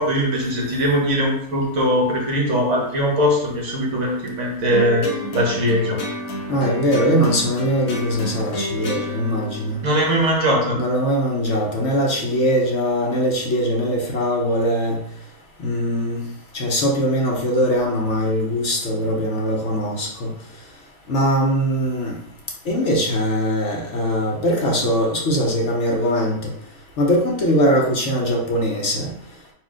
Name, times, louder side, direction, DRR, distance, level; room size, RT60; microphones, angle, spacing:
voice 1, 0.0-5.1 5.3-6.0 9.8-10.8, equal, 55° right, -2 dB, 1.5 m, -20 dB
sound 1, 4.7-11.2, left 1 dB, 75° left, 1.3 m, -30 dB
voice 2, 6.5-9.8 10.7-15.0 15.6-16.2 16.5-20.3 21.1-22.1 22.7-26.5 27.0-29.1, equal, 55° left, -1 dB, 1.1 m, -21 dB
4.3 x 2.5 x 4.8 m, 0.65 s
omnidirectional pair, 1.5 m